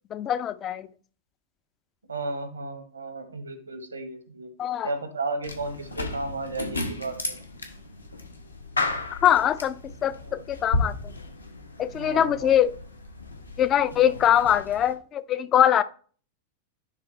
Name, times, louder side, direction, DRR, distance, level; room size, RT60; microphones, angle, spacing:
voice 1, 0.1-0.9 4.6-4.9 9.2-9.8 10.0-10.9 11.8-12.7 13.6-15.8, left 10 dB, 30° left, 0.5 m, -22 dB
voice 2, 2.1-4.5 4.8-7.3 10.2-10.4 11.9-12.6 14.1-14.4, right 2 dB, 75° right, 1.3 m, -34 dB
sound 1, 5.4-14.9, left 2 dB, 80° left, 1.3 m, -34 dB
10.5 x 3.7 x 3.3 m
figure-of-eight pair, 90°, 0 cm